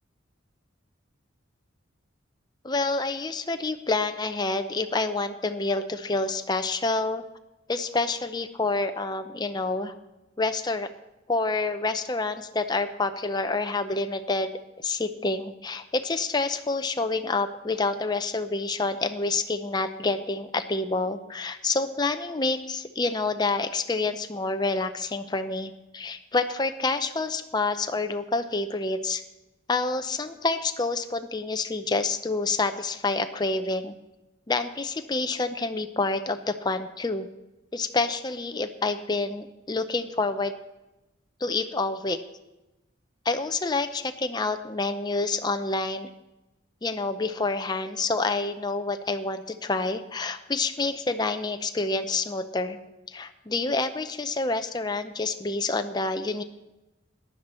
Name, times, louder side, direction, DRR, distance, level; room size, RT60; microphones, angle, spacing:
voice 1, 2.6-7.2 7.7-9.9 10.4-10.9 11.3-29.2 29.7-34.0 34.5-37.3 37.7-40.5 41.4-42.2 43.3-46.1 46.8-52.8 53.1-56.4, left 3 dB, 20° left, 8 dB, 0.6 m, -28 dB
15.0 x 10.5 x 4.3 m, 1.0 s
head